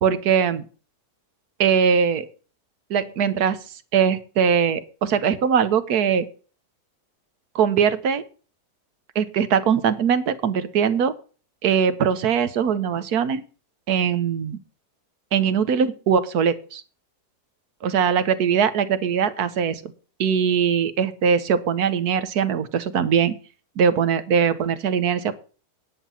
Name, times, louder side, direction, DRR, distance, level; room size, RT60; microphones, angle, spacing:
voice 1, 0.0-0.7 1.6-2.3 2.9-3.6 3.9-6.3 7.5-8.2 9.1-11.1 11.6-13.4 13.9-14.6 15.3-16.8 17.8-19.9 20.2-23.3 23.8-25.3, right 7 dB, 75° right, 12 dB, 1.4 m, -21 dB
10.0 x 5.7 x 7.1 m, 0.37 s
omnidirectional pair, 1.7 m